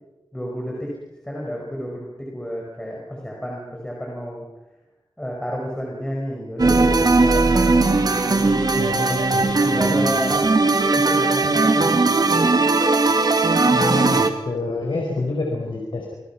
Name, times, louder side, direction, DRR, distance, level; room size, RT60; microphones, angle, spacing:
voice 1, 0.3-0.9 1.2-4.5 5.2-7.8 8.1-8.7 9.6-10.5 10.9-12.4, equal, 10° left, -2 dB, 5.6 m, -31 dB
sound 1, 6.6-14.3, right 3 dB, 50° right, 2.1 m, -18 dB
voice 2, 7.2-7.8 8.7-9.4 9.7-10.0 13.6-16.1, left 3 dB, 80° left, 1 dB, 4.6 m, -28 dB
28.0 x 21.0 x 5.9 m, 0.99 s
wide cardioid pair, 90°, 8 cm